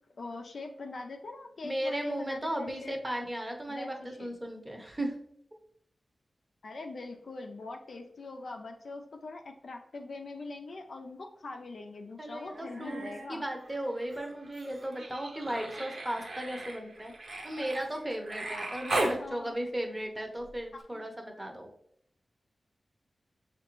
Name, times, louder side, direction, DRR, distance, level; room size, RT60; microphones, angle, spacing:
voice 1, 0.2-3.0 3.7-4.3 6.6-13.4 19.0-19.6 20.7-21.1, left 3 dB, 70° left, 4 dB, 0.5 m, -42 dB
voice 2, 1.6-5.1 12.2-17.1 17.4-21.7, right 1 dB, 15° right, 2 dB, 0.7 m, -36 dB
Human voice, 12.5-13.3 13.6-19.2 20.8-20.9, right 2 dB, 55° right, 0.9 m, -37 dB
6.5 x 2.5 x 3.0 m, 0.72 s
wide cardioid pair, 90°, 0 cm